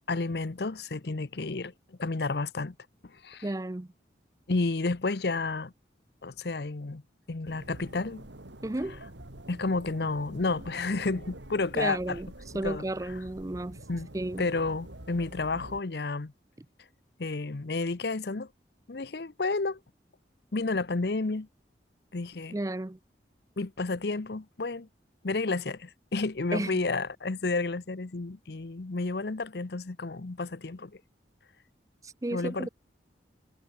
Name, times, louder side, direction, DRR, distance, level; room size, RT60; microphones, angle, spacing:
voice 1, 0.1-2.7 3.1-3.5 4.5-5.7 6.2-7.0 7.3-8.2 9.5-12.2 12.6-12.8 13.9-14.1 14.4-16.3 17.2-18.5 18.9-19.8 20.5-21.5 22.1-22.6 23.6-24.9 25.2-30.9 32.3-32.7, left 3 dB, 65° left, 0.8 m, -31 dB
voice 2, 3.4-3.9 8.6-9.0 11.7-12.3 12.5-13.8 14.1-14.5 22.5-23.0 26.5-26.8 32.0-32.7, right 1 dB, 20° right, 0.4 m, -33 dB
sound 1, 7.4-15.8, right 1 dB, 85° right, 3.2 m, -46 dB
head